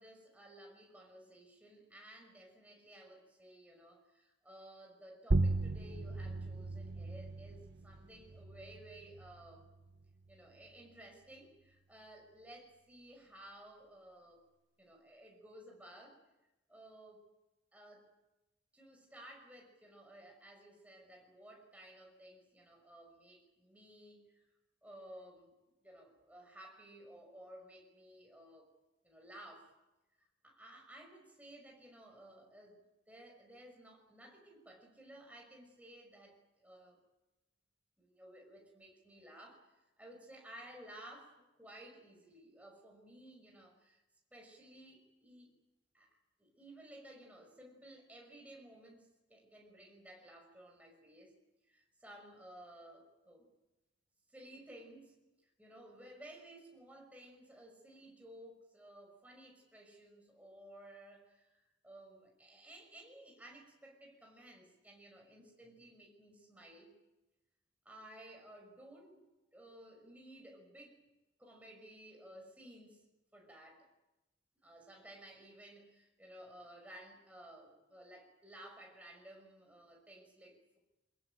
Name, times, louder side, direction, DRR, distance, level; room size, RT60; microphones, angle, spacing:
voice 1, 0.0-9.7 10.3-14.4 14.8-16.2 16.7-17.2 17.7-18.1 18.7-24.4 24.8-25.5 25.8-28.7 29.0-29.7 30.4-32.8 33.1-37.0 38.0-39.6 40.0-44.0 44.3-45.5 45.9-46.1 46.4-51.4 51.7-53.5 54.3-55.1 55.6-66.9 67.8-69.2 69.5-71.0 71.4-73.0 73.3-73.9 74.6-80.8, right 1 dB, 10° right, 1 dB, 5.9 m, -56 dB
sound 1, 5.3-10.4, right 2 dB, 80° right, 1.0 m, -37 dB
23.5 x 21.5 x 9.0 m, 1.0 s
head